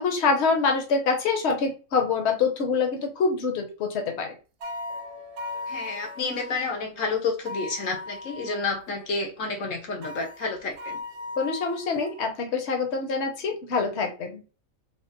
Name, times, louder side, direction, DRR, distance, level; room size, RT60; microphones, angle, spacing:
voice 1, 0.0-4.3 11.4-14.4, left 4 dB, 60° left, 3 dB, 1.1 m, -25 dB
sound 1, 4.6-7.0 8.7-8.8 10.6-10.8, right 1 dB, 40° right, 0.6 m, -46 dB
sound 2, 4.6-6.7 7.4-8.7 10.0-12.2, left 2 dB, 75° right, 0.9 m, -38 dB
voice 2, 5.7-11.0, left 4 dB, 75° left, 2 dB, 1.4 m, -30 dB
3.6 x 2.1 x 3.9 m, 0.34 s
omnidirectional pair, 1.4 m